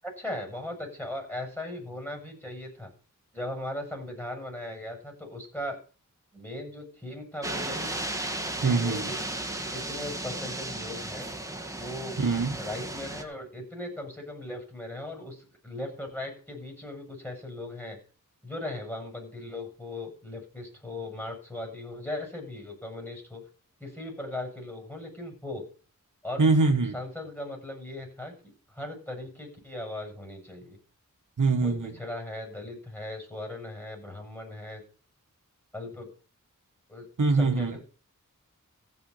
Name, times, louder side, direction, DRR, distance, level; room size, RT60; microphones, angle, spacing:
voice 1, 0.0-2.9 3.3-5.8 6.3-7.9 8.6-9.2 9.7-11.3 11.7-12.2 12.6-18.0 18.4-23.4 23.8-25.6 26.2-26.4 26.9-30.8 31.6-34.8 35.7-36.1 36.9-37.9, left 1 dB, 5° left, 2 dB, 7.9 m, -38 dB
sound 1, 7.4-13.2, right 1 dB, 10° right, 1.7 m, -35 dB
voice 2, 8.6-9.1 12.2-12.5 26.4-26.9 31.4-31.9 37.2-37.7, right 3 dB, 65° right, 5 dB, 1.6 m, -23 dB
15.5 x 6.2 x 5.7 m, 0.38 s
wide cardioid pair, 60°, 33 cm